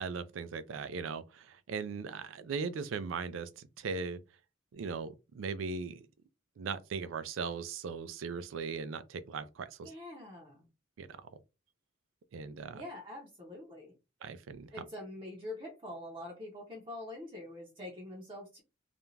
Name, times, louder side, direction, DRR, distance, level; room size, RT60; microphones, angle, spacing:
voice 1, 0.0-4.2 4.7-6.1 6.6-9.9 11.0-11.1 12.3-12.8 14.2-14.8, right 5 dB, 90° right, 0.4 m, -38 dB
voice 2, 9.8-10.6 12.7-13.9 14.7-18.6, left 1 dB, 25° right, 0.6 m, -45 dB
2.5 x 2.2 x 3.1 m
head